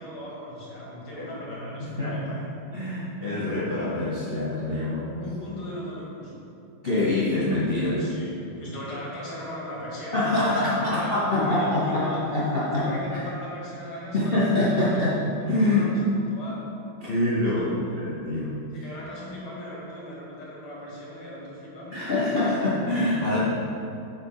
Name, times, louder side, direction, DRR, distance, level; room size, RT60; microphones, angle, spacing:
voice 1, 0.0-2.5 5.2-6.4 8.0-12.2 12.7-15.2 15.6-16.6 17.5-18.0 18.7-22.1, left 1 dB, 75° left, -5 dB, 2.6 m, -38 dB
voice 2, 1.8-2.2 2.7-5.2 6.8-8.0 10.1-12.9 13.1-13.2 14.1-15.2 15.5-15.9 17.0-18.5 21.9-23.4, left 2 dB, 55° left, -8 dB, 0.6 m, -25 dB
6.9 x 4.2 x 5.4 m, 2.7 s
omnidirectional pair, 2.4 m